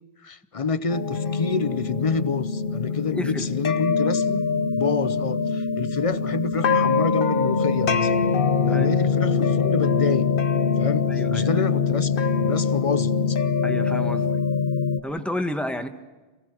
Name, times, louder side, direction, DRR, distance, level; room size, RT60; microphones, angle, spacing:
voice 1, 0.2-4.5 4.7-8.1 8.6-10.3 10.8-13.4, left 5 dB, 35° left, 0.7 m, -28 dB
sound 1, 0.9-15.0, left 5 dB, 60° left, 1.1 m, -23 dB
voice 2, 3.1-3.5 8.7-8.9 11.1-11.6 13.6-14.3 15.0-15.9, left 1 dB, ahead, 1.4 m, -30 dB
27.5 x 17.5 x 6.2 m
omnidirectional pair, 1.0 m